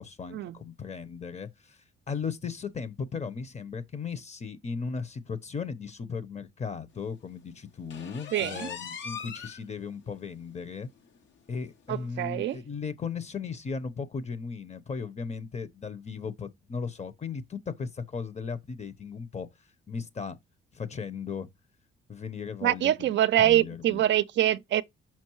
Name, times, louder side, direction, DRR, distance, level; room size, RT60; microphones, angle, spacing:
voice 1, 0.0-1.8 2.1-10.9 11.5-19.5 19.9-20.4 20.7-21.5 22.1-24.0, left 5 dB, 35° left, 0.9 m, -36 dB
sound 1, 7.9-9.6 10.1-10.2 10.6-10.7 11.1-11.2 12.1-12.2, left 7 dB, 70° left, 1.0 m, -40 dB
voice 2, 8.3-8.7 11.9-12.6 22.6-24.8, right 12 dB, 65° right, 0.5 m, -25 dB
5.8 x 5.3 x 3.1 m
cardioid pair, 90°, 20 cm